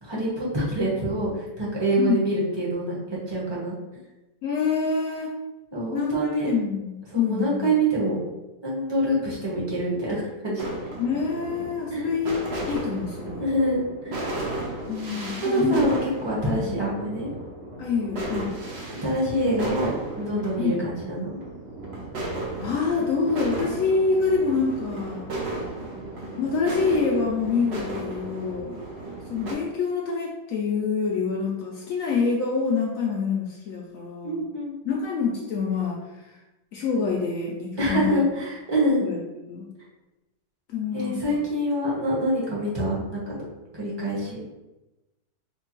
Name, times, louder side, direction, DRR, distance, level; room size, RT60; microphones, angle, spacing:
voice 1, 0.0-3.8 5.7-6.5 7.1-8.2 8.6-10.7 11.9-12.0 13.4-14.1 15.4-17.3 19.0-21.4 34.2-34.7 37.8-39.1 40.9-43.4 43.7-44.4, right 1 dB, 20° right, -6 dB, 0.8 m, -26 dB
voice 2, 4.4-5.3 5.9-7.7 11.0-12.4 12.6-13.5 14.9-15.9 16.6-16.7 17.8-18.5 20.6-20.8 22.6-25.3 26.3-28.8 29.3-34.5 34.8-36.0 36.2-36.4 36.7-38.2 39.0-39.2 39.5-39.7 40.7-41.4, left 5 dB, 70° left, -2 dB, 0.8 m, -26 dB
sound 1, 10.6-29.5, right 2 dB, 60° right, 0.7 m, -34 dB
4.9 x 2.3 x 3.0 m, 1.0 s
omnidirectional pair, 1.8 m